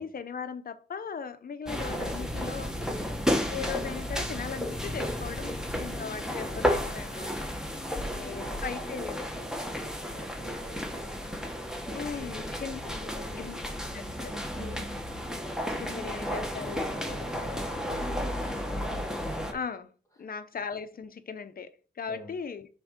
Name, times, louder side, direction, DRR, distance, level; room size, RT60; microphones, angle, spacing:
voice 1, 0.0-2.7 3.5-7.3 8.0-9.2 11.9-12.8 13.4-13.6 13.9-14.9 15.7-16.9 17.4-17.5 19.5-19.9 20.2-22.7, left 6 dB, 45° left, 0.7 m, -38 dB
sound 1, 1.7-19.5, equal, 5° right, 1.1 m, -33 dB
voice 2, 6.4-6.8 8.0-11.4 11.9-12.5 12.8-13.6 14.4-14.9 16.6-18.5 20.2-20.3 22.1-22.3, equal, 15° left, 2.0 m, -46 dB
7.0 x 3.7 x 5.1 m
wide cardioid pair, 145°, 21 cm